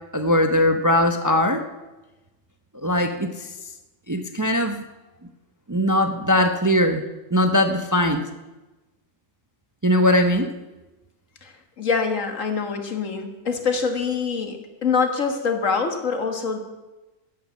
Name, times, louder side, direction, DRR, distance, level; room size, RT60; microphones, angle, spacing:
voice 1, 0.1-1.7 2.8-3.5 4.1-4.8 5.7-7.0 7.3-8.2 9.8-10.5, left 1 dB, 20° right, 6 dB, 0.6 m, -20 dB
voice 2, 11.4-16.6, left 5 dB, 80° left, 5 dB, 1.9 m, -25 dB
10.5 x 10.5 x 7.6 m, 1.1 s
omnidirectional pair, 1.3 m